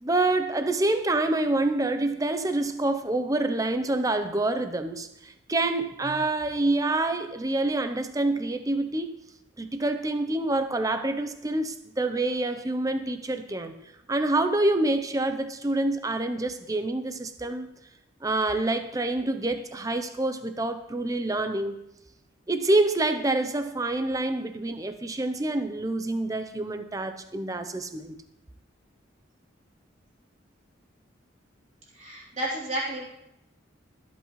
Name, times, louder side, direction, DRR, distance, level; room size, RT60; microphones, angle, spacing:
voice 1, 0.0-9.2 9.6-13.7 14.1-17.7 18.2-21.8 22.5-28.2, right 2 dB, 20° right, 9 dB, 0.6 m, -27 dB
voice 2, 31.9-33.0, right 1 dB, 35° right, -5 dB, 3.4 m, -31 dB
23.5 x 8.2 x 3.1 m, 0.86 s
head